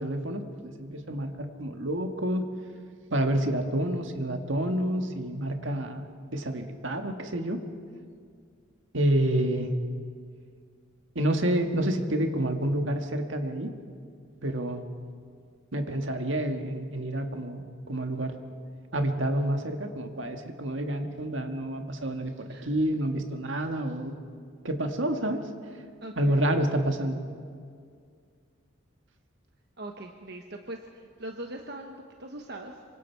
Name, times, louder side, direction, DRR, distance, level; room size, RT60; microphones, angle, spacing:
voice 1, 0.0-2.4 3.1-6.0 6.3-7.6 8.9-9.7 11.2-13.7 14.4-14.8 15.7-18.4 18.9-24.2 24.6-25.5 26.2-27.2, right 1 dB, 70° right, 5 dB, 1.8 m, -28 dB
voice 2, 26.0-26.4 29.8-31.9 32.2-32.8, right 1 dB, 50° right, 3 dB, 1.2 m, -41 dB
26.5 x 24.5 x 4.7 m, 2.1 s
head